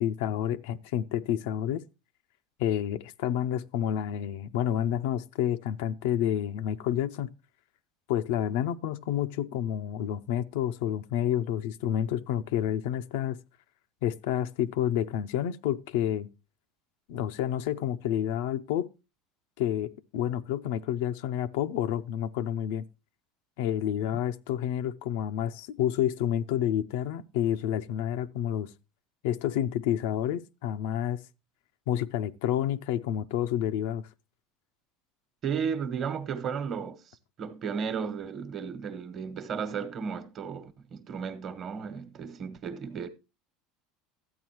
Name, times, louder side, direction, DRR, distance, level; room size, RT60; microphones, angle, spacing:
voice 1, 0.0-1.8 2.6-7.3 8.1-13.4 14.0-16.3 17.1-18.9 19.6-22.9 23.6-28.7 29.2-31.2 31.9-34.1, left 10 dB, 80° left, 0.5 m, -29 dB
voice 2, 35.4-37.0 37.4-43.1, right 6 dB, 40° right, 1.2 m, -34 dB
13.0 x 8.5 x 3.0 m
supercardioid pair, 110°, 0 cm